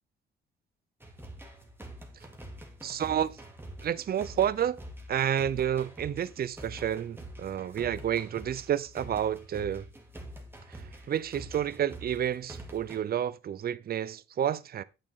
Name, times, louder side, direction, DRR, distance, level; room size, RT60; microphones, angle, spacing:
sound 1, 1.0-13.0, right 1 dB, 10° right, 2.5 m, -46 dB
voice 1, 2.8-3.4 3.8-4.8 5.1-9.9 10.7-14.8, right 9 dB, 50° right, 0.7 m, -30 dB
9.3 x 8.6 x 3.8 m
cardioid pair, 90°, 20 cm